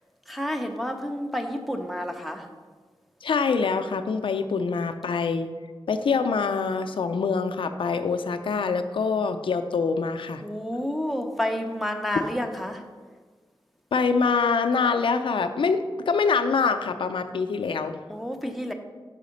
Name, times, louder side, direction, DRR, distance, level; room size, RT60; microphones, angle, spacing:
voice 1, 0.3-2.5 10.4-12.8 18.1-18.7, equal, ahead, 3 dB, 0.7 m, -30 dB
voice 2, 3.2-5.5 5.9-10.4 13.9-18.0, left 5 dB, 80° left, 7 dB, 0.4 m, -25 dB
5.7 x 4.9 x 5.2 m, 1.5 s
wide cardioid pair, 60°, 9 cm